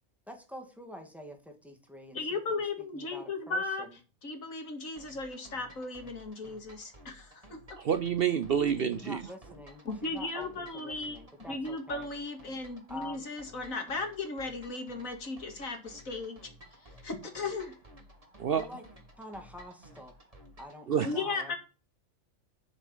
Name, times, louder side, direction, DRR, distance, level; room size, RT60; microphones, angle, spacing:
voice 1, 0.3-2.4 2.9-4.0 8.9-12.1 12.9-13.2 18.5-18.8 19.2-20.2 20.6-21.6, left 1 dB, ahead, 2.2 m, -46 dB
voice 2, 2.1-3.8 4.2-7.6 9.9-11.2 11.5-16.4 16.8-17.7 21.0-21.6, left 3 dB, 85° left, 2.5 m, -36 dB
sound 1, 5.0-20.8, equal, 25° right, 2.3 m, -55 dB
voice 3, 7.8-9.2 18.4-18.7 20.9-21.1, right 8 dB, 55° right, 0.7 m, -28 dB
7.1 x 6.7 x 7.3 m
omnidirectional pair, 1.4 m